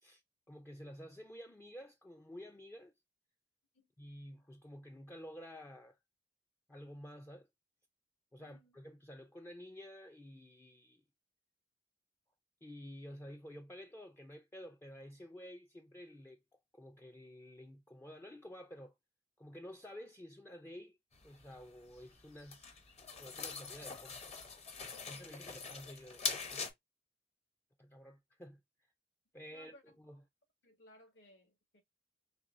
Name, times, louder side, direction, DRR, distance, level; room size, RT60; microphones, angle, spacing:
voice 1, 0.5-2.9 4.0-6.0 6.7-7.5 8.3-11.0 12.6-16.4 16.7-18.9 19.4-21.0 21.2-22.7 23.2-24.3 25.0-26.6 27.8-28.6 29.3-30.2, equal, 10° left, 0.3 m, -51 dB
voice 2, 8.4-8.8 24.9-25.2 29.5-29.8 30.6-31.8, left 1 dB, 70° left, 1.5 m, -62 dB
sound 1, 21.1-26.7, left 5 dB, 35° left, 0.8 m, -43 dB
4.2 x 3.0 x 2.5 m
head